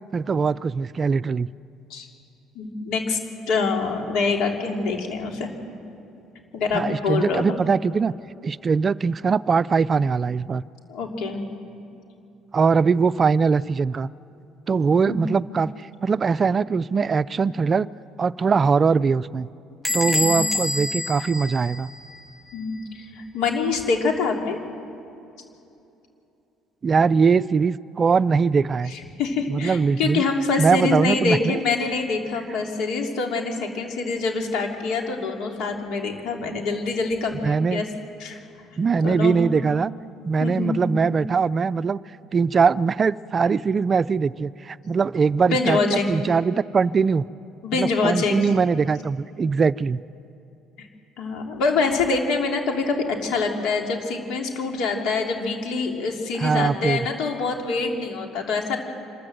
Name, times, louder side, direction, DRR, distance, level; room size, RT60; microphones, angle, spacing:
voice 1, 0.1-1.5 6.7-8.1 8.4-10.6 12.5-14.1 14.7-15.7 16.0-17.9 18.2-19.5 19.9-21.9 26.8-28.9 29.5-30.2 30.6-31.6 37.4-37.8 38.8-39.9 40.2-42.0 42.3-47.3 47.7-50.0 56.4-57.0, right 5 dB, 35° right, 17 dB, 0.4 m, -21 dB
voice 2, 2.5-3.2 3.5-5.5 6.5-7.6 10.9-11.5 15.1-15.2 20.1-20.4 22.5-24.6 28.9-37.8 38.2-38.4 39.0-39.4 40.4-40.8 45.5-46.1 47.6-48.5 50.8-50.9 51.2-58.8, left 4 dB, 75° left, 2 dB, 3.1 m, -25 dB
Bell / Door, 19.8-22.3, left 2 dB, 15° left, 1.9 m, -27 dB
26.0 x 13.5 x 7.9 m, 2.7 s
supercardioid pair, 90°, 0 cm